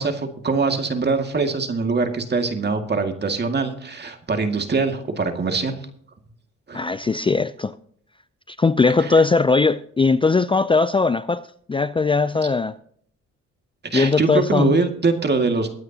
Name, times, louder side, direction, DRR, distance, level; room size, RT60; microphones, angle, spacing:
voice 1, 0.0-5.8 6.7-6.9 9.0-9.1 13.8-15.7, right 4 dB, 35° right, 2.1 m, -23 dB
voice 2, 6.7-7.8 8.5-12.8 13.9-14.8, left 4 dB, 15° left, 0.4 m, -19 dB
22.5 x 9.1 x 2.9 m
cardioid pair, 90°, 30 cm